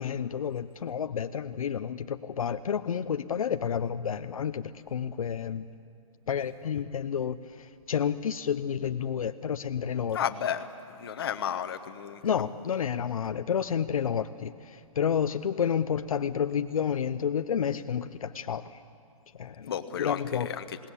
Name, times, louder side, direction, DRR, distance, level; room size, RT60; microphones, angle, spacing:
voice 1, 0.0-5.7 6.3-10.2 12.2-18.8 19.3-19.7 20.0-20.5, left 8 dB, 75° left, 10 dB, 0.7 m, -30 dB
voice 2, 10.1-10.7 11.0-12.4 19.6-20.8, left 9 dB, 45° left, 8 dB, 1.2 m, -33 dB
27.5 x 19.0 x 8.4 m, 2.3 s
hypercardioid pair, 170°, 18 cm